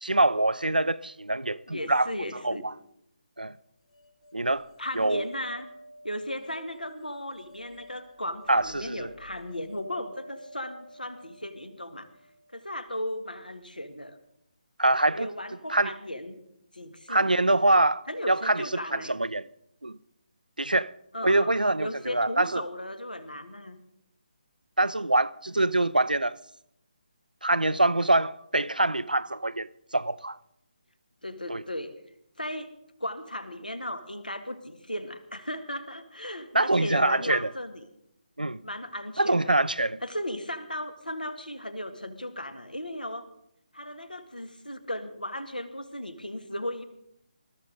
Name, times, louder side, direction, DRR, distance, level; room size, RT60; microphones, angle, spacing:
voice 1, 0.0-2.1 2.4-2.7 3.4-3.5 4.3-4.7 5.0-5.3 8.5-9.1 14.8-15.3 15.7-15.9 17.1-19.5 19.8-20.0 20.6-20.9 21.2-22.6 24.8-26.4 27.4-30.4 31.5-31.6 36.5-37.5 38.4-38.6 39.2-40.0, right 2 dB, 85° right, 0.6 m, -25 dB
voice 2, 1.7-2.6 4.8-5.7 6.0-12.1 12.5-14.2 15.1-16.4 16.7-17.3 18.1-19.1 21.1-23.8 31.2-31.9 32.4-32.7 33.0-37.9 38.6-39.7 40.0-43.3 43.7-46.8, left 1 dB, 85° left, 1.8 m, -36 dB
sound 1, 3.9-13.1, equal, 45° left, 1.8 m, -50 dB
21.0 x 14.0 x 3.9 m
figure-of-eight pair, 150°, 5 cm